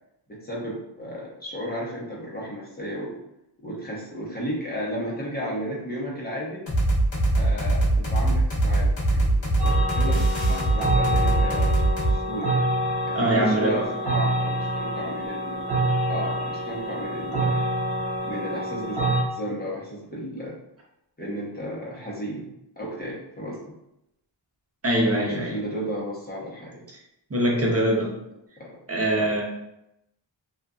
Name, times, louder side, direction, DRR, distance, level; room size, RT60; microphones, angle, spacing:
voice 1, 0.3-3.2 3.6-6.6 7.4-9.3 9.6-11.8 12.0-12.5 13.0-15.7 16.1-17.7 18.2-19.0 19.3-20.6 21.2-23.6 25.1-26.8 28.6-28.8 29.1-29.3, equal, 20° left, -5 dB, 1.0 m, -34 dB
sound 1, 6.7-12.2, right 2 dB, 85° left, 0.9 m, -22 dB
sound 2, 9.6-19.2, right 1 dB, 70° right, 1.0 m, -27 dB
voice 2, 13.1-13.8 24.8-25.5 27.3-28.1 28.9-29.4, right 1 dB, 35° right, -2 dB, 0.8 m, -22 dB
2.6 x 2.4 x 2.4 m, 0.84 s
wide cardioid pair, 70°, 43 cm